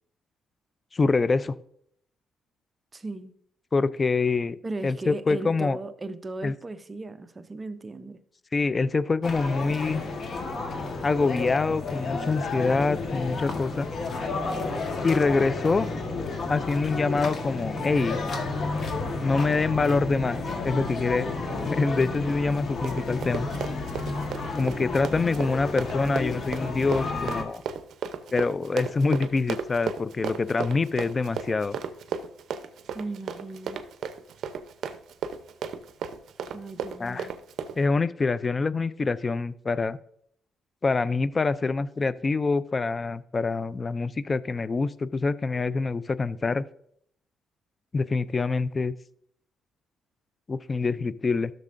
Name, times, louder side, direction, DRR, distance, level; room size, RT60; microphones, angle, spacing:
voice 1, 0.9-1.5 3.7-4.6 4.8-5.8 6.4-6.5 8.5-10.0 11.0-13.9 15.0-15.9 16.5-18.2 19.2-20.4 20.6-21.4 21.7-23.5 24.6-27.6 28.3-31.8 37.0-37.3 37.8-40.0 40.8-46.6 47.9-48.9 50.5-51.5, left 4 dB, 30° left, 0.3 m, -25 dB
voice 2, 2.9-3.3 4.6-8.2 32.9-33.8 36.5-37.3, right 2 dB, 25° right, 0.6 m, -37 dB
sound 1, 9.2-27.4, left 3 dB, 50° left, 1.3 m, -31 dB
Run, 22.5-37.8, right 7 dB, 70° right, 0.6 m, -35 dB
13.0 x 6.5 x 2.5 m
cardioid pair, 90°, 0 cm